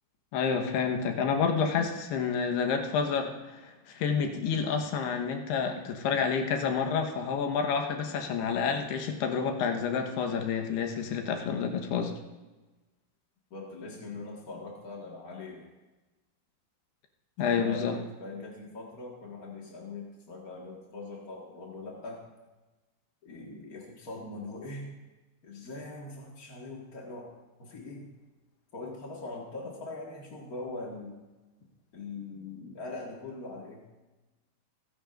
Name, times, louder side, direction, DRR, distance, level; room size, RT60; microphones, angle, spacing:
voice 1, 0.3-12.1 17.4-18.0, left 6 dB, 90° left, 4 dB, 3.3 m, -29 dB
voice 2, 13.5-15.7 17.4-22.2 23.2-24.9 25.4-27.3 27.6-28.1 28.7-31.1 31.9-33.8, left 3 dB, 50° left, -3 dB, 1.1 m, -41 dB
28.5 x 10.5 x 2.6 m, 1.1 s
omnidirectional pair, 4.6 m